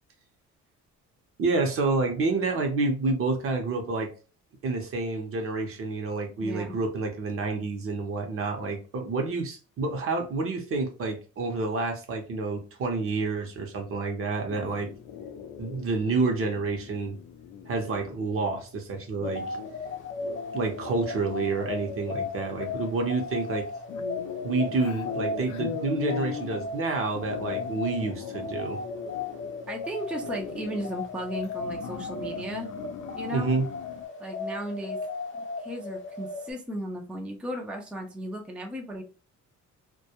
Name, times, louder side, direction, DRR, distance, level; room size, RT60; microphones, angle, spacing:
voice 1, 1.4-4.1 4.6-14.9 15.6-17.2 17.7-19.4 20.5-23.7 24.4-28.8 33.3-33.7, right 3 dB, 45° right, 3 dB, 0.7 m, -29 dB
voice 2, 6.4-6.7 29.7-32.7 33.1-33.5 34.2-35.0 35.3-39.0, equal, 5° right, 1 dB, 0.4 m, -35 dB
sound 1, 14.5-34.0, left 8 dB, 75° left, 0.4 m, -41 dB
sound 2, 19.2-36.5, left 3 dB, 40° left, 0.9 m, -36 dB
2.2 x 2.1 x 2.8 m, 0.36 s
cardioid pair, 110°, 30 cm